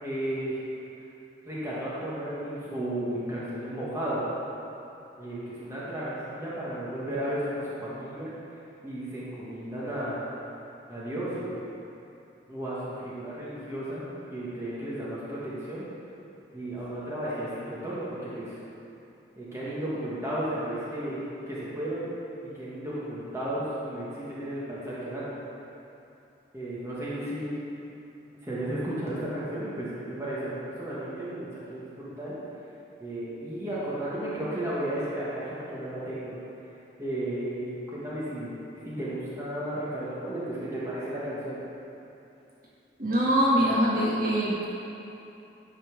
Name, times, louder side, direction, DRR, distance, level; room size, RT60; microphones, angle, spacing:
voice 1, 0.0-0.6 1.5-4.2 5.2-8.3 8.8-10.2 10.9-11.6 12.5-14.1 14.3-15.8 16.5-18.6 19.4-21.2 21.5-22.1 22.5-25.3 26.5-27.6 28.4-32.4 33.0-36.4 37.0-38.5 38.8-41.6, right 1 dB, 15° right, -9 dB, 1.6 m, -33 dB
voice 2, 43.0-44.7, equal, 50° right, -7 dB, 1.6 m, -23 dB
10.0 x 4.4 x 6.1 m, 2.9 s
head